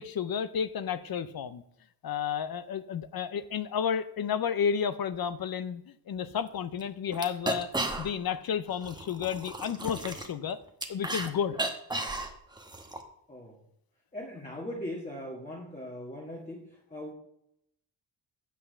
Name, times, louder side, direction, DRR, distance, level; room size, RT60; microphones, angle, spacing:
voice 1, 0.0-1.6 2.0-7.7 8.0-10.6 10.9-11.6, left 7 dB, 55° left, 14 dB, 0.6 m, -31 dB
sound 1, 6.4-6.5 6.8-6.9 7.1-8.3 8.7-11.3 11.5-13.0, right 2 dB, 10° right, 1.0 m, -34 dB
voice 2, 14.1-16.6 16.9-17.1, left 1 dB, 15° left, -2 dB, 1.6 m, -39 dB
8.8 x 5.6 x 6.7 m, 0.76 s
wide cardioid pair, 135°, 44 cm